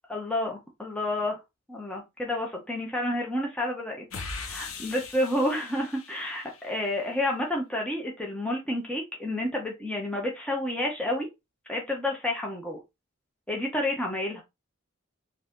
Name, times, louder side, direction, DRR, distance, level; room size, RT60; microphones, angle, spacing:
voice 1, 0.1-1.4 1.7-4.0 4.3-11.3 11.7-12.8 13.5-14.4, left 1 dB, 5° left, 1.0 m, -30 dB
sound 1, 4.1-6.8, left 4 dB, 90° left, 0.9 m, -40 dB
4.8 x 2.8 x 3.8 m
head